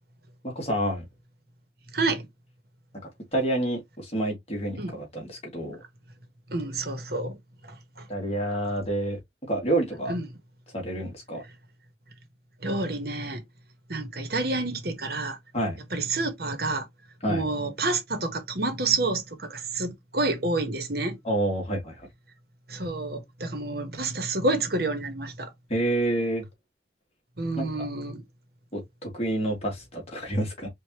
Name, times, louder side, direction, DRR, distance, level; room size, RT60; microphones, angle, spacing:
voice 1, 0.4-1.0 3.3-5.8 8.1-9.2 9.5-10.1 10.7-11.4 15.5-15.8 17.2-17.4 21.2-22.1 25.7-26.5 27.6-27.9 28.7-30.7, right 1 dB, 35° left, 2.2 m, -28 dB
voice 2, 1.9-2.3 4.8-4.9 6.5-7.4 10.1-10.2 12.6-13.4 13.9-15.4 15.9-16.8 17.3-21.2 22.7-25.5 27.4-28.2, right 2 dB, 55° right, 1.4 m, -28 dB
5.0 x 2.8 x 3.0 m
head